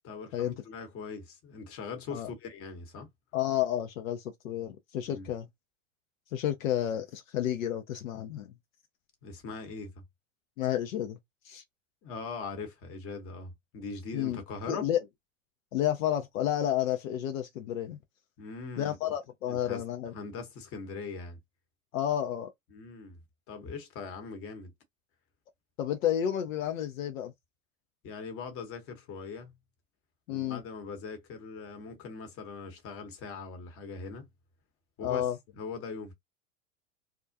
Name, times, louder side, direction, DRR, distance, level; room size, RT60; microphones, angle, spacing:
voice 1, 0.0-3.1 5.0-5.3 9.2-9.9 12.0-14.9 18.4-19.0 19.5-19.8 20.1-21.4 22.7-23.2 23.5-24.7 28.0-29.5 30.3-34.3 35.0-36.1, left 4 dB, 35° left, 1.0 m, -41 dB
voice 2, 3.3-5.5 6.3-8.5 10.6-11.2 11.4-11.6 14.1-14.4 14.7-15.0 15.7-18.0 18.8-20.1 21.9-22.5 25.8-27.3 30.3-30.6 35.0-35.4, left 11 dB, 70° left, 0.6 m, -31 dB
2.4 x 2.1 x 2.5 m
hypercardioid pair, 95°, 41 cm